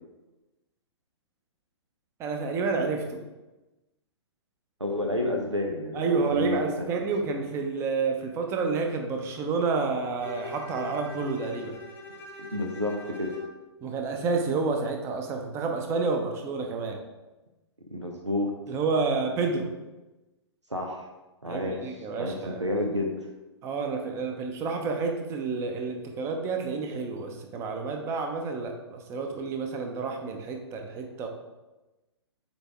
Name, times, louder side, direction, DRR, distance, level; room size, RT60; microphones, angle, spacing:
voice 1, 2.2-3.2 5.9-11.8 13.8-17.0 18.7-19.7 21.4-22.6 23.6-31.3, right 4 dB, 20° right, 3 dB, 0.7 m, -29 dB
voice 2, 4.8-6.9 12.4-13.4 17.8-18.6 20.7-21.1 21.4-21.8 22.2-23.1, left 1 dB, 90° right, 2 dB, 0.9 m, -30 dB
Bowed string instrument, 10.2-13.6, left 4 dB, 15° left, 0.9 m, -41 dB
8.1 x 3.5 x 3.5 m, 1.1 s
figure-of-eight pair, 120°, 15 cm